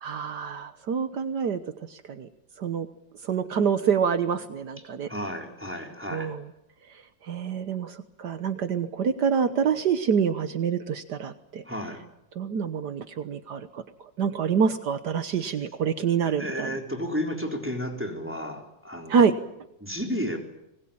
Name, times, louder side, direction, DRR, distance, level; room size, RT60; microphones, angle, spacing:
voice 1, 0.0-1.6 1.9-2.3 2.6-2.9 3.2-5.1 6.1-6.4 7.3-11.6 12.4-13.8 14.2-16.7 19.1-19.3, right 6 dB, 70° right, 11 dB, 1.7 m, -26 dB
voice 2, 5.1-6.3 11.6-12.0 16.3-19.2 19.8-20.4, equal, 5° right, 3 dB, 3.9 m, -32 dB
25.5 x 20.5 x 8.6 m, 0.84 s
omnidirectional pair, 2.0 m